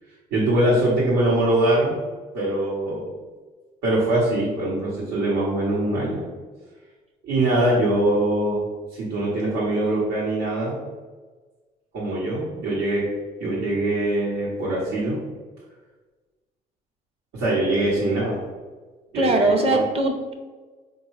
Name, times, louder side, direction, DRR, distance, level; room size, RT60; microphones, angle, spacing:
voice 1, 0.3-2.0 2.3-3.1 3.8-6.2 7.2-8.6 8.9-10.8 11.9-13.0 13.4-15.2 17.3-18.4 19.1-19.8, right 1 dB, 90° right, -7 dB, 1.0 m, -22 dB
voice 2, 19.1-20.3, right 2 dB, 35° right, 3 dB, 0.6 m, -21 dB
4.4 x 2.3 x 3.1 m, 1.3 s
cardioid pair, 110°, 17 cm